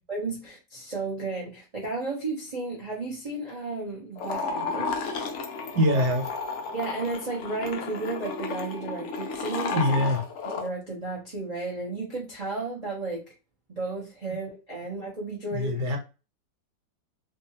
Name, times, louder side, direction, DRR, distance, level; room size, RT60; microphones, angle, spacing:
voice 1, 0.1-4.9 6.7-9.9 10.6-13.2 13.7-15.8, right 3 dB, 40° right, -3 dB, 0.5 m, -33 dB
sound 1, 4.2-10.7, left 4 dB, 90° left, 0.6 m, -33 dB
voice 2, 5.7-6.3 9.7-10.2 15.5-16.0, left 1 dB, 80° right, 3 dB, 1.4 m, -24 dB
2.8 x 2.4 x 2.7 m, 0.30 s
omnidirectional pair, 1.8 m